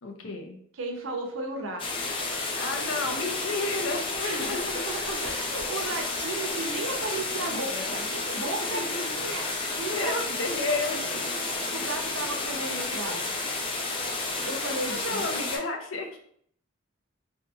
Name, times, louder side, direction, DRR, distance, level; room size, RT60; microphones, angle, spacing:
voice 1, 0.0-0.6 2.6-4.8 5.1-5.3 7.1-7.9 8.6-9.1 9.6-11.4 14.9-16.2, left 2 dB, 75° left, 4 dB, 0.5 m, -33 dB
voice 2, 0.8-1.8 4.2-8.8 9.1-10.1 11.1-13.4 14.4-15.4, right 2 dB, 75° right, 3 dB, 0.6 m, -35 dB
sound 1, 1.8-15.6, left 3 dB, 25° left, 0.4 m, -31 dB
2.8 x 2.6 x 2.3 m, 0.62 s
head